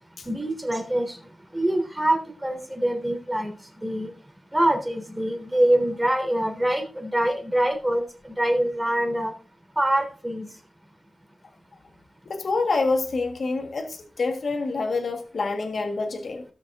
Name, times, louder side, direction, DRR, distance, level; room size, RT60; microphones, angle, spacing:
voice 1, 0.2-1.2 1.5-3.5 3.8-4.1 4.5-9.3 9.7-10.5, right 1 dB, 10° right, 3 dB, 3.4 m, -24 dB
voice 2, 12.3-16.4, left 3 dB, 70° left, 4 dB, 1.7 m, -27 dB
18.0 x 6.8 x 2.7 m, 0.38 s
wide cardioid pair, 85°, 0 cm